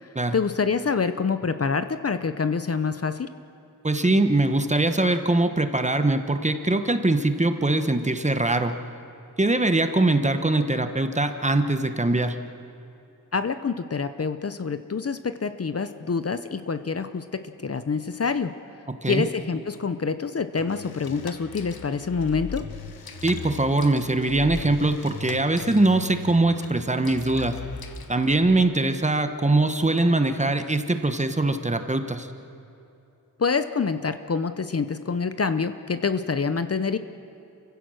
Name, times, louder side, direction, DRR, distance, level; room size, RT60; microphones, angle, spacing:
voice 1, 0.0-3.3 13.3-18.5 19.1-22.6 33.4-37.0, left 5 dB, 45° left, 11 dB, 0.7 m, -26 dB
voice 2, 3.8-8.7 9.4-12.4 19.0-19.2 23.2-27.6 28.1-32.3, right 2 dB, 20° right, 8 dB, 1.1 m, -22 dB
sound 1, 20.6-28.6, left 5 dB, 90° left, 1.2 m, -39 dB
28.5 x 16.0 x 6.4 m, 2.8 s
wide cardioid pair, 120°, 35 cm